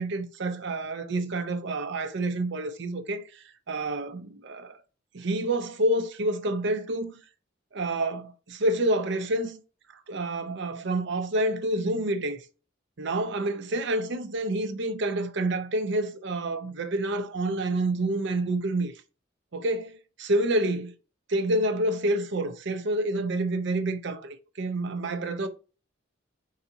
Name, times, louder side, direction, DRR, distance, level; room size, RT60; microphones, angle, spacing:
voice 1, 0.0-4.8 5.1-7.1 7.7-9.6 10.1-12.4 13.0-18.9 19.5-20.9 21.3-25.5, right 1 dB, 60° right, 0.7 m, -28 dB
4.7 x 2.8 x 3.8 m
head